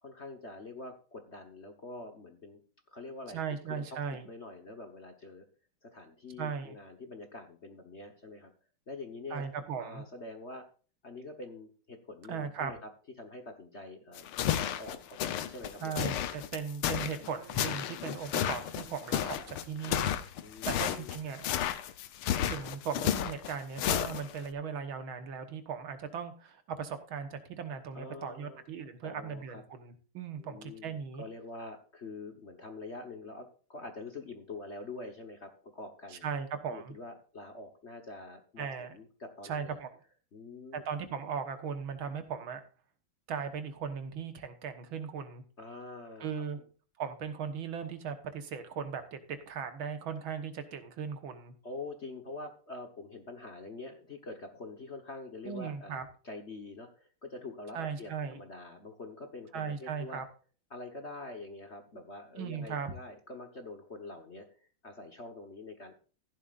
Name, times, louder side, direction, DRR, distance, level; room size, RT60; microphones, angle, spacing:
voice 1, 0.0-2.6 2.9-3.4 3.7-5.5 5.8-8.5 8.9-9.4 9.8-10.6 11.0-12.8 13.2-15.9 20.4-21.1 27.9-28.6 29.0-29.6 30.4-36.3 36.7-39.8 40.3-40.8 45.6-46.6 51.6-60.2 60.7-66.0, left 2 dB, 35° left, 5 dB, 1.3 m, -45 dB
voice 2, 3.3-4.3 6.4-6.8 9.3-10.0 12.3-12.7 15.8-20.1 20.7-21.5 22.5-31.2 36.1-36.9 38.6-38.9 39.4-39.9 40.9-42.6 43.3-45.4 46.2-46.6 47.0-51.5 55.5-56.1 57.7-58.4 59.5-60.2 62.4-62.9, right 6 dB, 70° right, 9 dB, 2.0 m, -38 dB
sound 1, 14.2-24.5, left 10 dB, 75° left, 1.7 m, -32 dB
15.0 x 11.0 x 2.5 m, 0.38 s
omnidirectional pair, 2.4 m